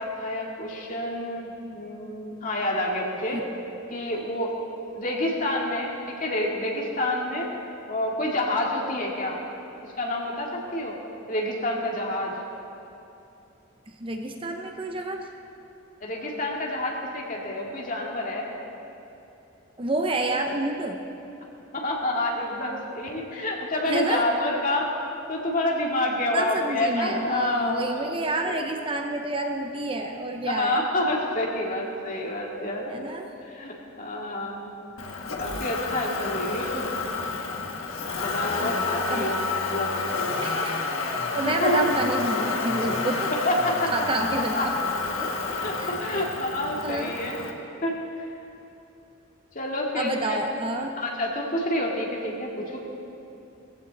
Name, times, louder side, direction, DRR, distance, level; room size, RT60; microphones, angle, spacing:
voice 1, 0.0-3.4 3.9-4.5 4.9-7.5 7.9-9.4 10.0-11.0 11.3-12.3 16.0-18.5 21.7-24.9 25.3-28.2 28.4-28.6 30.4-32.9 33.4-34.7 35.4-37.0 38.2-39.4 39.7-39.9 41.4-41.9 43.3-43.9 44.5-44.7 45.5-48.3 49.5-50.4 51.0-52.8, left 1 dB, 40° left, -2 dB, 2.1 m, -28 dB
voice 2, 13.9-15.2 19.8-21.0 23.9-24.2 26.3-30.8 32.9-33.3 38.6-38.7 39.0-39.3 40.4-43.3 43.9-44.7 45.2-45.3 45.8-46.2 46.8-47.2 50.0-51.0, right 2 dB, 25° right, 4 dB, 0.7 m, -29 dB
Motor vehicle (road), 35.0-47.5, left 4 dB, 75° left, 1.4 m, -30 dB
17.0 x 15.5 x 4.1 m, 2.9 s
head